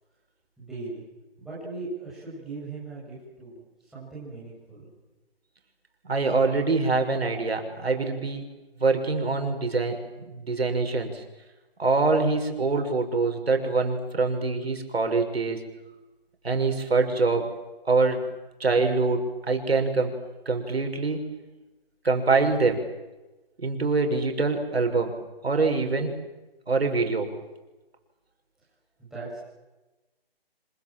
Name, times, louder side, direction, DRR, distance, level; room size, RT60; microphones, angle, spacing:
voice 1, 0.6-1.0 1.4-4.9 29.0-29.5, right 3 dB, ahead, -9 dB, 7.5 m, -39 dB
voice 2, 6.0-8.5 8.8-11.2 11.8-15.7 16.4-17.5 17.8-18.3 18.6-20.2 20.5-21.2 22.0-22.8 23.6-25.1 25.4-26.2 26.7-27.3, right 3 dB, 80° right, 5 dB, 6.2 m, -24 dB
26.5 x 26.0 x 7.8 m, 1.1 s
hypercardioid pair, 175°, 30 cm